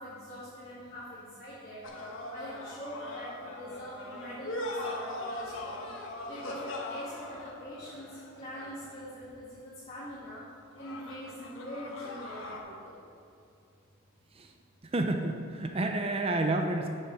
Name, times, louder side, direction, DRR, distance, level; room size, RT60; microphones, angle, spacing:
voice 1, 0.0-1.8 2.3-5.7 6.3-10.4 10.8-13.0, equal, 30° left, -11 dB, 2.0 m, -43 dB
sound 1, 1.8-9.1 10.7-12.6, left 1 dB, 60° left, 1.2 m, -40 dB
voice 2, 14.8-16.9, right 2 dB, 25° right, 4 dB, 0.5 m, -30 dB
7.5 x 7.0 x 6.1 m, 2.6 s
head